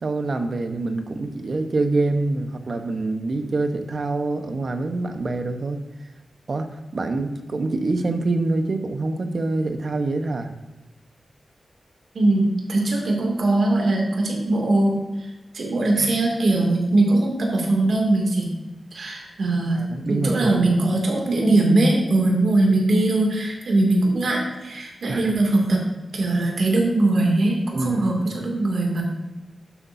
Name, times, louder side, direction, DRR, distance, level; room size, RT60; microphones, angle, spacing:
voice 1, 0.0-5.8 6.5-10.5 16.0-16.1 19.7-20.7 25.1-25.3 27.7-28.1, right 2 dB, 60° right, 6 dB, 1.1 m, -25 dB
voice 2, 12.1-18.5 18.9-25.8 26.1-29.0, right 2 dB, 75° right, -1 dB, 2.5 m, -21 dB
12.0 x 8.2 x 2.7 m, 1.1 s
cardioid pair, 70°, 0 cm